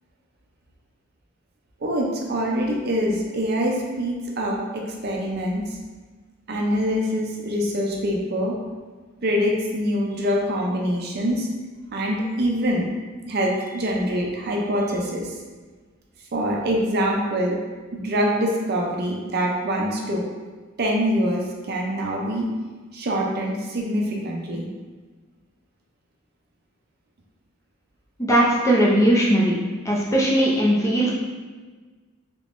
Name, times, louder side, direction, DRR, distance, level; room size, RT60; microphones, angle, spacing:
voice 1, 1.8-5.6 6.5-8.5 9.2-11.5 11.9-12.9 13.3-15.3 16.3-17.6 17.9-20.2 20.8-22.5 22.9-24.7, equal, 50° right, -1 dB, 0.5 m, -24 dB
voice 2, 28.2-29.5 29.8-31.1, right 1 dB, 15° left, -4 dB, 0.5 m, -19 dB
3.5 x 2.9 x 2.5 m, 1.4 s
head